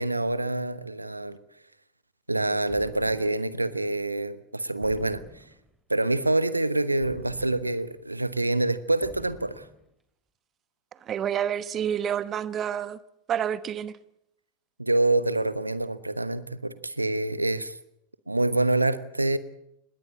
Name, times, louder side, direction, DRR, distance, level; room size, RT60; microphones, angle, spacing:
voice 1, 0.0-1.4 2.3-5.4 5.9-9.7 14.8-17.8 18.3-19.4, right 2 dB, 85° right, 15 dB, 1.1 m, -26 dB
sound 1, 2.7-3.6 4.8-5.8 7.0-8.0 9.0-9.9, right 2 dB, 5° right, 2.9 m, -49 dB
voice 2, 11.0-13.0 13.3-13.9, right 9 dB, 25° right, 17 dB, 1.0 m, -28 dB
20.5 x 17.5 x 8.7 m, 0.79 s
figure-of-eight pair, 90°, 0 cm